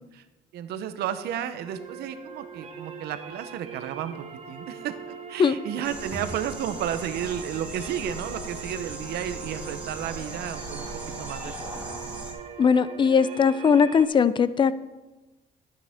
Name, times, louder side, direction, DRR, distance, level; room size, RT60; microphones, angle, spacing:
voice 1, 0.5-10.9 11.2-11.9, right 9 dB, 75° right, 10 dB, 0.9 m, -33 dB
sound 1, 1.6-14.0, right 7 dB, 40° right, 1.4 m, -41 dB
sound 2, 5.8-12.3, right 1 dB, 10° right, 2.0 m, -38 dB
voice 2, 12.6-14.7, left 6 dB, 30° left, 16 dB, 0.5 m, -20 dB
12.0 x 9.0 x 3.6 m, 1.1 s
cardioid pair, 110°, 17 cm